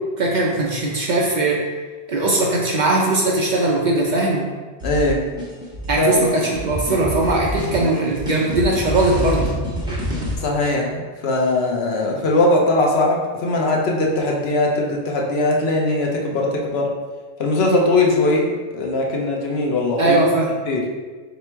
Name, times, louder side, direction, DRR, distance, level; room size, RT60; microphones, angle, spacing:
voice 1, 0.2-1.6 2.1-4.5 5.9-9.5 20.0-20.5, right 2 dB, 55° right, -2 dB, 0.6 m, -19 dB
voice 2, 4.8-5.2 6.0-6.1 10.4-16.9 17.4-20.2 20.6-20.8, left 2 dB, 70° left, -1 dB, 0.9 m, -20 dB
sound 1, 4.8-10.4, equal, 5° right, 0.9 m, -27 dB
3.4 x 2.9 x 4.4 m, 1.4 s
omnidirectional pair, 1.1 m